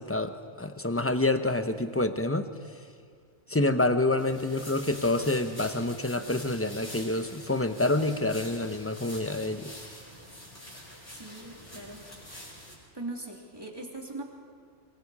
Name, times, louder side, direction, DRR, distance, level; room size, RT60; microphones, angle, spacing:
voice 1, 0.0-2.5 3.5-9.7, left 2 dB, 10° left, 9 dB, 0.8 m, -27 dB
sound 1, 4.2-12.8, left 1 dB, 60° left, 6.9 m, -45 dB
voice 2, 11.1-12.0 12.9-14.2, right 2 dB, 15° right, 0 dB, 2.8 m, -40 dB
24.5 x 24.0 x 4.9 m, 2.2 s
omnidirectional pair, 1.4 m